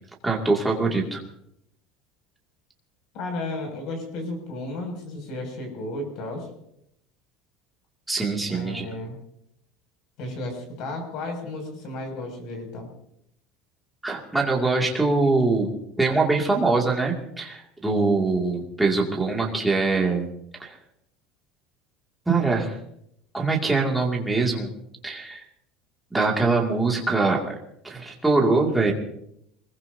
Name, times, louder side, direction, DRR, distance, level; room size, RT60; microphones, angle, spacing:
voice 1, 0.2-1.2 8.1-8.9 14.0-15.7 16.0-20.3 20.6-20.8 22.3-22.8 23.3-24.7 25.0-25.4 26.1-27.5 27.8-28.9, right 3 dB, 5° right, -2 dB, 2.3 m, -23 dB
voice 2, 3.1-6.5 8.5-9.2 10.2-12.9, left 2 dB, 45° left, 3 dB, 6.5 m, -33 dB
24.0 x 21.5 x 2.8 m, 0.74 s
cardioid pair, 180°, 0 cm